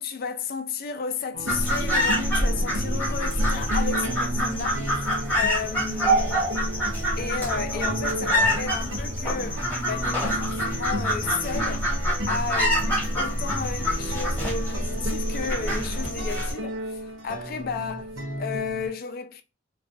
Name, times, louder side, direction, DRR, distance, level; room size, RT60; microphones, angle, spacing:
voice 1, 0.0-5.1 5.3-6.5 7.2-11.9 12.2-18.1 18.4-19.4, left 5 dB, 50° left, 0.4 m, -33 dB
sound 1, 1.3-18.9, right 1 dB, 80° right, 0.7 m, -34 dB
sound 2, 1.5-16.5, equal, 10° left, 0.8 m, -26 dB
2.3 x 2.2 x 2.5 m
head